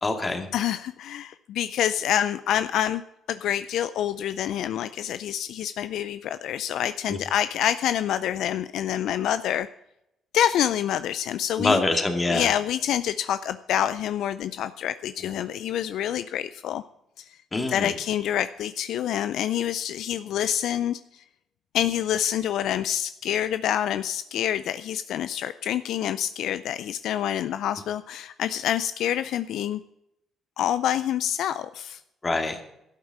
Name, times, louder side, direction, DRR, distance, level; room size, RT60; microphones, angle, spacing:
voice 1, 0.0-0.5 7.1-7.2 11.6-12.5 17.5-17.9 32.2-32.6, left 2 dB, 25° left, 5 dB, 2.3 m, -25 dB
voice 2, 0.5-3.0 3.3-9.7 10.3-11.8 12.3-16.8 17.2-17.3 17.7-21.2 21.7-29.8 30.6-32.0, left 10 dB, 75° left, 13 dB, 0.4 m, -27 dB
12.0 x 8.3 x 7.6 m, 0.83 s
supercardioid pair, 75°, 0 cm